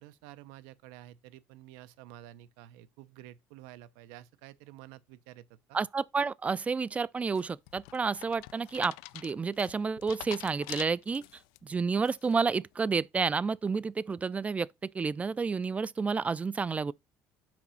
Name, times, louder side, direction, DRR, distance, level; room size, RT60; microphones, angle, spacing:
voice 1, 0.0-5.8, right 14 dB, 90° right, 0.7 m, -51 dB
voice 2, 5.7-11.2 11.6-16.9, right 5 dB, 20° right, 0.4 m, -30 dB
sound 1, 7.4-11.6 12.0-12.5, left 20 dB, 90° left, 0.3 m, -45 dB
6.0 x 5.0 x 5.5 m
cardioid pair, 115°, 7 cm